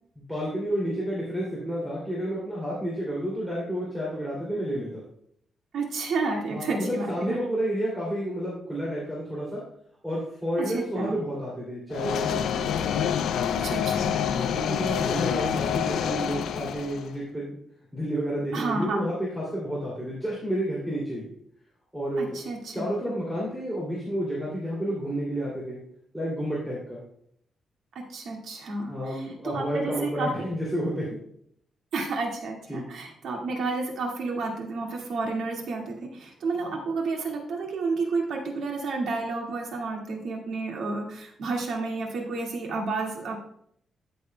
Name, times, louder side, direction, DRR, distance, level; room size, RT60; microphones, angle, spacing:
voice 1, 0.2-5.0 6.5-9.6 10.0-12.7 14.4-17.5 17.9-21.3 21.9-22.4 22.7-25.8 26.1-27.0 28.9-31.1 32.7-32.9, equal, 10° right, -6 dB, 2.6 m, -30 dB
voice 2, 5.7-7.4 10.6-11.2 13.6-14.2 18.5-19.0 22.2-22.9 28.0-30.3 31.9-43.4, right 3 dB, 70° right, 0 dB, 1.9 m, -31 dB
sound 1, 11.9-17.1, left 8 dB, 85° left, 0.4 m, -27 dB
13.5 x 6.5 x 2.2 m, 0.67 s
wide cardioid pair, 150°, 0 cm